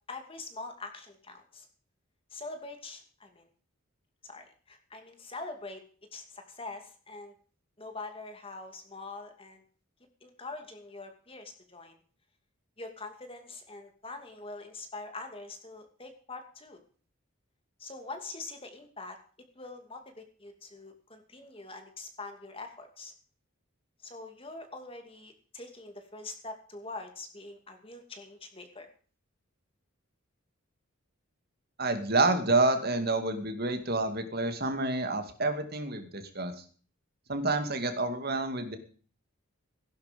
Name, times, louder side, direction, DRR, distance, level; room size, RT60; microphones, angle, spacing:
voice 1, 0.1-1.7 2.3-3.4 4.2-5.8 6.1-7.3 7.8-9.6 10.2-12.0 12.8-16.8 17.8-19.2 19.6-23.1 24.0-28.9, left 3 dB, 25° left, 6 dB, 2.5 m, -44 dB
voice 2, 31.8-36.6 37.3-38.8, right 2 dB, 45° right, 7 dB, 2.2 m, -28 dB
16.0 x 11.5 x 5.3 m, 0.42 s
head